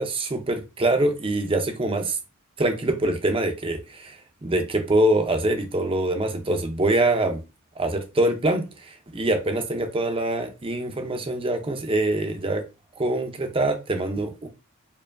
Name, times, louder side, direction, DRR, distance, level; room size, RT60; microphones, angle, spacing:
voice 1, 0.0-2.2 2.6-4.2 4.4-7.4 7.8-12.6 13.0-14.5, right 1 dB, 25° right, 0.6 m, -24 dB
4.5 x 2.7 x 2.5 m
head